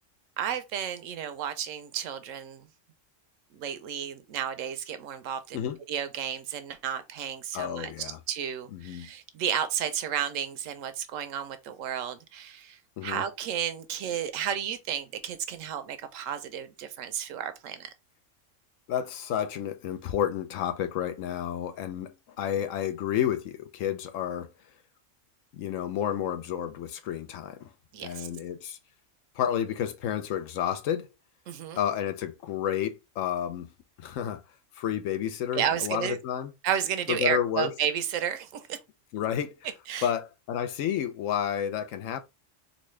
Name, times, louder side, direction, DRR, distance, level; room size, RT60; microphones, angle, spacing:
voice 1, 0.4-2.7 3.5-17.9 27.9-28.3 31.5-31.8 35.5-36.2 36.6-38.8 39.9-40.1, right 9 dB, 90° right, 1.0 m, -32 dB
voice 2, 7.5-8.2 8.7-9.1 13.0-13.2 18.9-24.5 25.5-27.7 28.0-28.8 29.4-31.1 31.7-33.7 34.0-34.4 34.8-36.5 37.1-37.7 39.1-39.6 40.0-42.2, left 9 dB, 85° left, 1.0 m, -30 dB
4.0 x 2.3 x 3.1 m
omnidirectional pair, 1.3 m